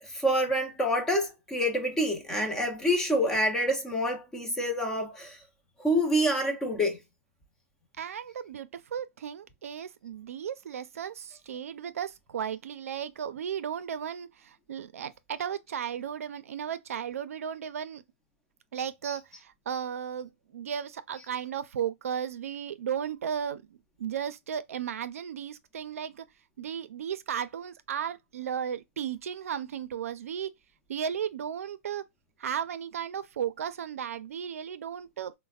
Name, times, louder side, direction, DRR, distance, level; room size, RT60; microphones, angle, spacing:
voice 1, 0.0-5.4 5.8-7.0, equal, 5° left, 0.5 m, -27 dB
voice 2, 8.0-18.0 18.7-23.6 24.0-26.3 26.6-30.5 30.9-32.1 32.4-35.3, right 8 dB, 90° right, 0.4 m, -35 dB
3.2 x 2.0 x 2.3 m
hypercardioid pair, 165°, 8 cm